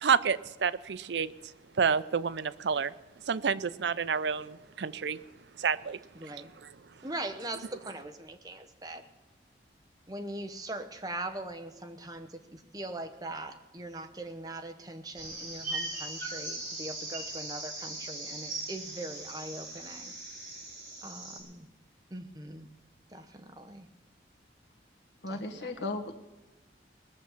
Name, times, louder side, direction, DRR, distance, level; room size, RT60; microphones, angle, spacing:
voice 1, 0.0-1.3 1.8-2.9 3.3-5.2 5.6-6.0, right 6 dB, 80° right, 16 dB, 0.5 m, -29 dB
voice 2, 6.1-6.5 7.0-9.0 10.1-20.1 21.0-21.7 22.1-22.7 23.1-23.9 25.3-25.4, right 1 dB, 20° right, 7 dB, 1.0 m, -41 dB
sound 1, 15.2-21.4, right 2 dB, 45° right, 4.3 m, -39 dB
voice 3, 25.2-26.2, left 2 dB, 85° left, 4 dB, 1.5 m, -36 dB
19.5 x 7.2 x 7.3 m, 1.1 s
head